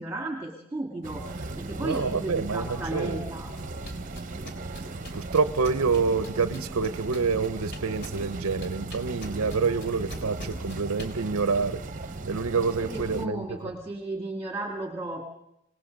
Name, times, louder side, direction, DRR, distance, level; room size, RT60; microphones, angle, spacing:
voice 1, 0.0-3.5 12.8-15.2, right 2 dB, 10° right, 2 dB, 1.9 m, -34 dB
sound 1, 1.0-13.2, right 2 dB, 35° right, 0.9 m, -37 dB
voice 2, 1.8-3.2 5.1-11.8 12.3-13.4, right 4 dB, 75° right, 12 dB, 0.7 m, -27 dB
sound 2, 3.6-11.1, left 1 dB, 50° left, 3.3 m, -41 dB
26.5 x 18.5 x 5.2 m, 0.82 s
head